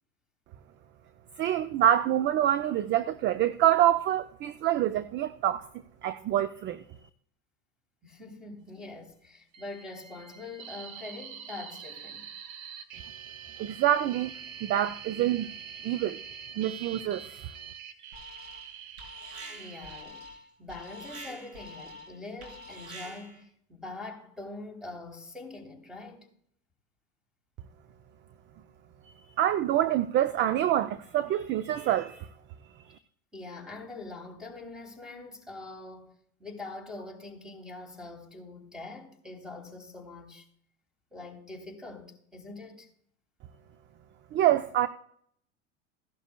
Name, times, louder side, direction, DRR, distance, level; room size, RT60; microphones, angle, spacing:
voice 1, 1.4-5.7 6.0-6.8 13.6-14.3 14.6-15.5 15.8-16.2 16.6-17.4 29.4-32.3 44.3-44.9, right 12 dB, 30° right, 0.4 m, -26 dB
voice 2, 8.0-12.3 19.6-20.3 20.6-26.3 33.3-36.1 36.4-40.5 41.1-42.9, left 3 dB, ahead, 3.1 m, -43 dB
sound 1, 9.5-20.0, right 8 dB, 55° right, 1.4 m, -45 dB
Alarm, 18.1-18.7 19.0-23.4, right 1 dB, 75° right, 3.7 m, -46 dB
16.0 x 11.5 x 2.2 m
hypercardioid pair, 90°, 42 cm